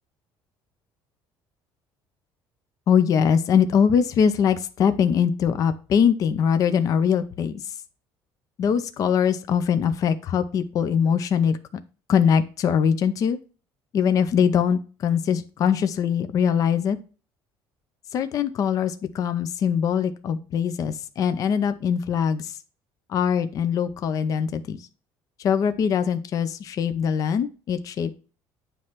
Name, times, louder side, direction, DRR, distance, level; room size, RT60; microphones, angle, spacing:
voice 1, 2.9-7.6 8.6-11.6 12.1-13.4 13.9-17.0 18.1-22.5 23.1-24.8 25.4-28.1, left 7 dB, 40° left, 10 dB, 0.6 m, -22 dB
9.4 x 3.2 x 5.7 m, 0.35 s
cardioid pair, 160°, 9 cm